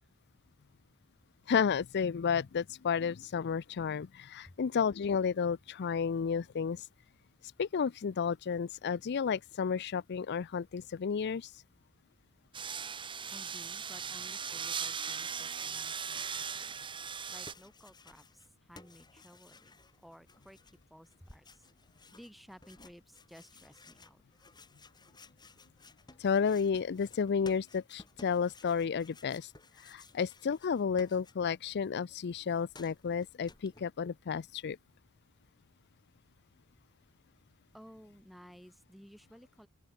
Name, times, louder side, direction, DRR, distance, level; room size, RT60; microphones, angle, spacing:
voice 1, 1.5-6.8 7.6-11.5 26.2-29.5 29.8-34.8, left 6 dB, 50° left, 0.4 m, -32 dB
sound 1, 12.5-17.5, right 6 dB, 25° right, 1.0 m, -38 dB
voice 2, 13.3-16.9 17.3-21.7 22.1-24.2 37.7-39.7, equal, ahead, 7.6 m, -56 dB
sound 2, 17.3-18.5 18.7-31.7 32.0-33.8, left 3 dB, 20° left, 2.3 m, -57 dB
open air
head